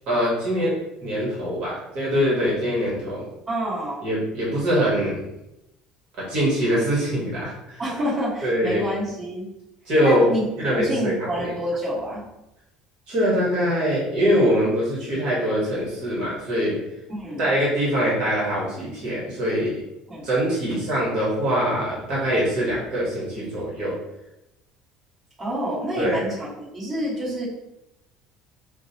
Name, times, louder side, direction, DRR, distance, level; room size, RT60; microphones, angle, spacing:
voice 1, 0.1-0.7 1.0-3.2 4.0-5.2 6.2-7.8 8.4-8.9 9.9-11.5 13.1-16.8 17.4-19.8 20.2-24.0 26.0-26.2, equal, 45° right, -5 dB, 1.2 m, -23 dB
voice 2, 3.5-4.0 7.8-9.5 10.0-10.4 10.8-12.2 17.1-17.5 20.1-20.3 25.4-27.4, equal, 20° right, -9 dB, 1.4 m, -28 dB
4.7 x 2.0 x 2.8 m, 0.90 s
cardioid pair, 165°, 2 cm